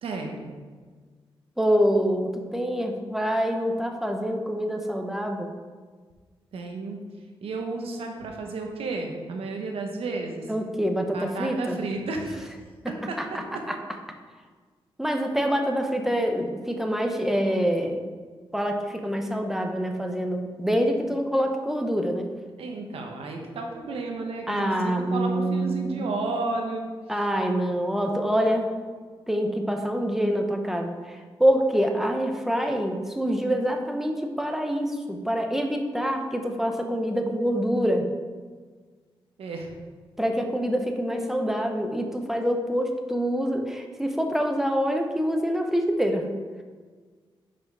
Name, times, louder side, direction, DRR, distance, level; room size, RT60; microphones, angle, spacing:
voice 1, 0.0-0.5 6.5-7.0 7.4-10.5 11.1-12.5 12.9-13.6 22.6-26.9 39.4-39.7, right 3 dB, 90° right, 2 dB, 1.0 m, -32 dB
voice 2, 1.6-5.5 10.5-11.8 12.8-13.8 15.0-18.0 18.5-22.3 24.5-26.1 27.1-28.7 29.3-38.1 40.2-46.3, equal, 5° right, 4 dB, 0.8 m, -26 dB
6.1 x 5.1 x 4.7 m, 1.5 s
cardioid pair, 80°, 10 cm